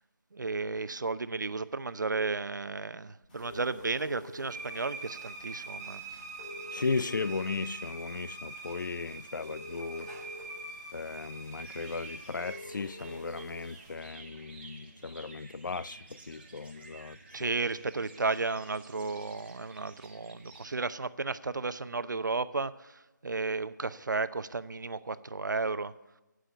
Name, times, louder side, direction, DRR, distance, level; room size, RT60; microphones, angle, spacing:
voice 1, 0.3-6.0 17.3-25.9, right 3 dB, 70° right, 0.7 m, -33 dB
sound 1, 3.3-13.9, left 1 dB, 25° left, 4.2 m, -49 dB
sound 2, 4.5-14.1, right 3 dB, 10° right, 0.8 m, -45 dB
voice 2, 6.7-10.1 10.9-17.5, left 4 dB, 75° left, 0.4 m, -36 dB
sound 3, 11.6-20.7, right 3 dB, 30° right, 1.4 m, -52 dB
11.5 x 9.2 x 7.1 m
figure-of-eight pair, 170°, 11 cm